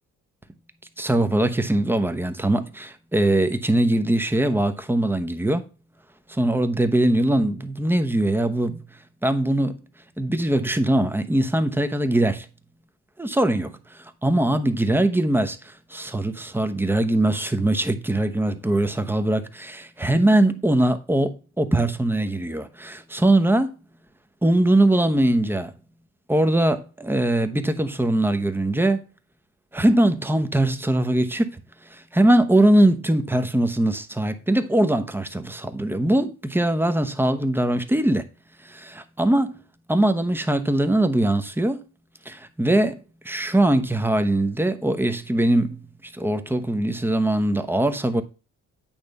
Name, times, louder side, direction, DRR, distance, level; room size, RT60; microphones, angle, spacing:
voice 1, 1.0-5.6 6.3-8.8 9.2-9.8 10.2-12.5 13.2-23.7 24.4-25.7 26.3-29.0 29.7-31.6 31.9-38.3 39.2-39.6 39.9-41.8 42.3-48.2, right 1 dB, 5° right, 0.9 m, -21 dB
8.9 x 3.4 x 5.4 m
cardioid pair, 90°, 30 cm